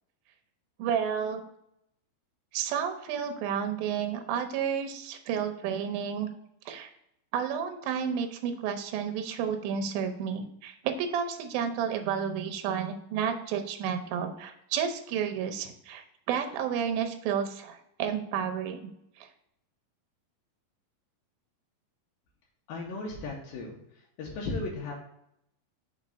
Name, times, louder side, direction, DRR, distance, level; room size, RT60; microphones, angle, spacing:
voice 1, 0.8-1.4 2.5-6.3 6.7-6.9 7.3-18.9 19.2-19.3, right 7 dB, 80° right, 5 dB, 2.4 m, -31 dB
voice 2, 22.7-24.9, left 3 dB, 80° left, -3 dB, 2.6 m, -36 dB
6.0 x 3.2 x 5.1 m, 0.78 s
omnidirectional pair, 4.3 m